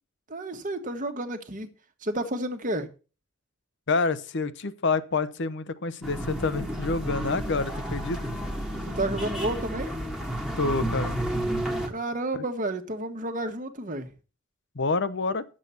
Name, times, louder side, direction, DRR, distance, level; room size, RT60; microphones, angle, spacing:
voice 1, 0.3-1.7 2.0-2.9 8.8-10.0 11.9-14.1, right 1 dB, 40° right, 8 dB, 1.4 m, -31 dB
voice 2, 3.9-8.2 10.6-11.2 12.3-12.4 14.7-15.4, left 3 dB, 60° left, 15 dB, 0.8 m, -28 dB
sound 1, 6.0-11.9, right 1 dB, 5° right, 1.4 m, -31 dB
11.0 x 7.5 x 5.7 m, 0.34 s
head